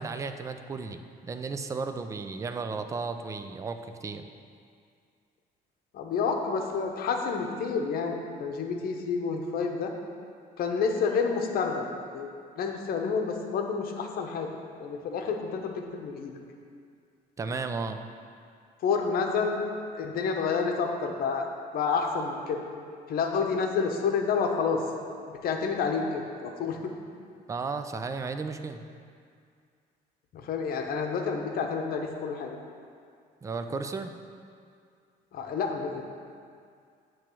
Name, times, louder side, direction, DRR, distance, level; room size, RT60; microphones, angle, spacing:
voice 1, 0.0-4.3 17.4-18.0 27.5-28.8 33.4-34.1, right 4 dB, 20° right, 7 dB, 0.4 m, -34 dB
voice 2, 5.9-9.9 10.6-11.8 12.1-12.3 12.6-16.3 18.8-19.6 20.0-21.5 21.7-22.6 23.1-24.8 25.4-26.9 30.3-32.5 35.3-36.0, left 5 dB, 60° left, 3 dB, 0.8 m, -29 dB
8.4 x 3.1 x 6.0 m, 2.3 s
cardioid pair, 110°, 17 cm